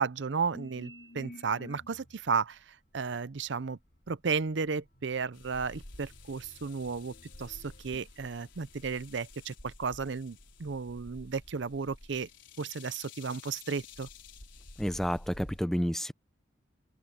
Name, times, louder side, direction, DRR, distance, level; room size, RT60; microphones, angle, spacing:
voice 1, 0.0-3.8 4.1-12.3 12.6-14.1, right 5 dB, 70° right, 0.6 m, -34 dB
sound 1, 0.5-2.2 2.9-7.8, left 1 dB, 55° left, 3.3 m, -53 dB
sound 2, 5.3-15.6, left 3 dB, 75° left, 4.0 m, -51 dB
voice 2, 14.8-16.1, equal, ahead, 0.5 m, -30 dB
open air
head